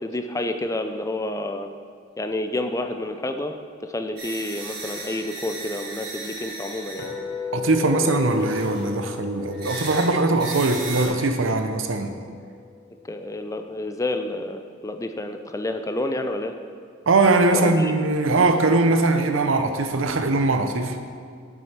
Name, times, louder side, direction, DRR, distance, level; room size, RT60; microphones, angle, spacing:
voice 1, 0.0-1.7 2.2-3.5 3.8-7.1 13.1-16.6 17.5-17.9, left 1 dB, 15° left, 7 dB, 0.5 m, -29 dB
sound 1, 4.2-7.8 8.1-11.1, right 3 dB, 50° right, 1.9 m, -36 dB
sound 2, 7.0-13.1, left 6 dB, 50° left, 0.9 m, -35 dB
voice 2, 7.5-12.2 17.1-21.0, right 3 dB, 85° right, 7 dB, 0.7 m, -21 dB
7.6 x 6.3 x 5.7 m, 2.2 s
head